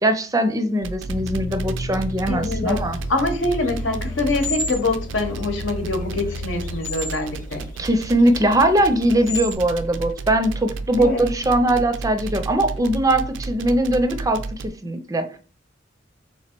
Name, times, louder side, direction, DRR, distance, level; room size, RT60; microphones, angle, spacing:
voice 1, 0.0-3.0 7.8-15.4, right 1 dB, 20° right, 8 dB, 0.4 m, -21 dB
sound 1, 0.8-14.7, right 3 dB, 80° right, 0.4 m, -32 dB
sound 2, 1.1-6.8, left 4 dB, 70° left, 0.4 m, -34 dB
voice 2, 2.3-2.8 3.1-7.6 11.0-11.3, left 2 dB, 85° left, 5 dB, 1.0 m, -24 dB
sound 3, 2.7-9.5, left 2 dB, 40° left, 0.8 m, -35 dB
3.6 x 2.9 x 4.4 m, 0.39 s
head